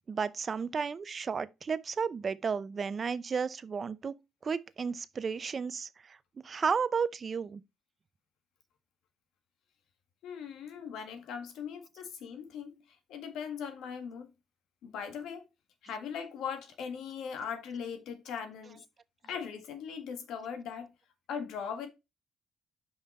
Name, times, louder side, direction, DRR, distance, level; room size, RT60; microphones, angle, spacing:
voice 1, 0.1-4.2 4.4-6.2 6.4-7.6, right 6 dB, 40° right, 0.6 m, -33 dB
voice 2, 10.2-14.3 14.8-15.5 15.8-18.8 19.2-20.9 21.3-21.9, left 7 dB, 85° left, 1.8 m, -39 dB
5.6 x 5.3 x 4.3 m
cardioid pair, 90°, 0 cm